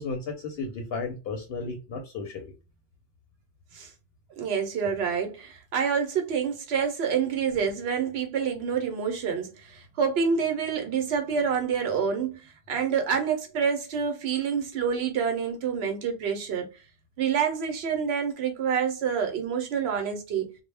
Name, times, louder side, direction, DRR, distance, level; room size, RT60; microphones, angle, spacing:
voice 1, 0.0-2.4, left 4 dB, 70° left, 0.8 m, -34 dB
voice 2, 4.4-16.7 17.2-20.6, right 6 dB, 75° right, 0.8 m, -27 dB
2.1 x 2.0 x 3.2 m
omnidirectional pair, 1.1 m